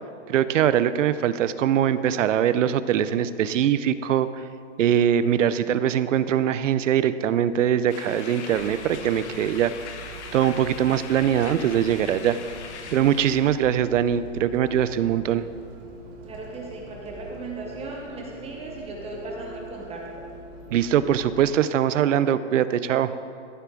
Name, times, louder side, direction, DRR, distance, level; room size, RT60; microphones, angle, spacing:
voice 1, 0.3-4.3 4.8-9.7 10.3-12.4 12.9-15.4 20.7-23.1, right 10 dB, 80° right, 14 dB, 0.6 m, -22 dB
sound 1, 7.9-13.7, left 5 dB, 65° left, 1.2 m, -40 dB
Bus, 8.5-21.5, right 1 dB, 45° right, 1.7 m, -43 dB
voice 2, 16.2-20.2, right 3 dB, 15° right, -1 dB, 1.0 m, -36 dB
15.0 x 6.9 x 3.7 m, 2.5 s
hypercardioid pair, 135°, 37 cm